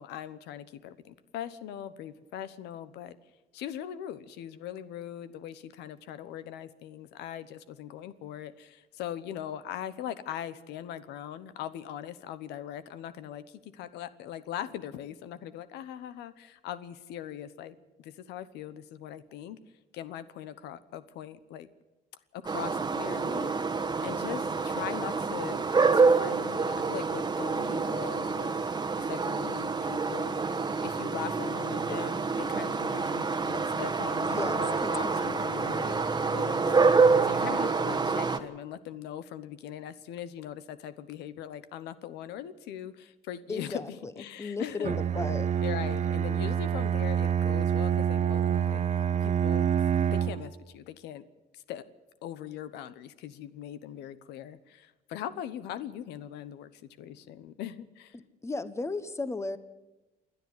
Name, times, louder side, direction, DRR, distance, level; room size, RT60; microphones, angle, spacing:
voice 1, 0.0-3.2 3.5-19.6 19.9-21.7 22.3-23.5 24.0-28.6 29.0-30.4 30.8-36.6 37.2-45.0 45.6-48.8 49.1-49.7 50.1-51.2 51.5-51.9 52.2-58.2, left 10 dB, 85° left, 14 dB, 1.0 m, -40 dB
sound 1, 22.4-38.4, right 4 dB, 25° right, 1.3 m, -27 dB
voice 2, 34.2-35.4 36.4-36.9 43.5-44.1 44.4-45.5 58.1-59.6, left 3 dB, 15° left, 13 dB, 1.1 m, -36 dB
Bowed string instrument, 44.8-50.5, right 9 dB, 45° right, 1.0 m, -27 dB
28.0 x 10.0 x 9.6 m, 1.1 s
cardioid pair, 110°, 17 cm